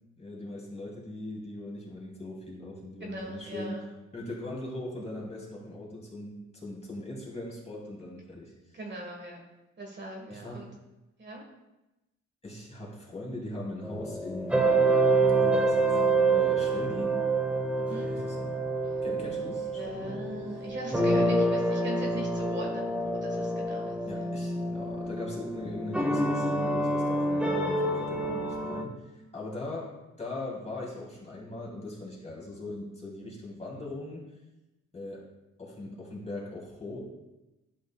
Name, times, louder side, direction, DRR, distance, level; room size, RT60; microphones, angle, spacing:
voice 1, 0.2-3.8 4.1-8.5 10.3-10.7 12.4-14.6 15.4-16.0 16.3-17.2 17.9-18.6 19.0-20.2 24.0-29.9 30.2-34.2 34.9-35.3 35.6-37.0, left 1 dB, 20° left, -3 dB, 2.6 m, -40 dB
voice 2, 3.0-3.9 8.7-9.4 9.8-10.7 11.2-11.4 17.8-18.2 19.6-24.3, equal, 35° right, 0 dB, 1.4 m, -40 dB
sound 1, 13.8-28.8, right 2 dB, 5° right, 0.8 m, -27 dB
11.0 x 5.2 x 2.3 m, 1.0 s
cardioid pair, 90°, 30 cm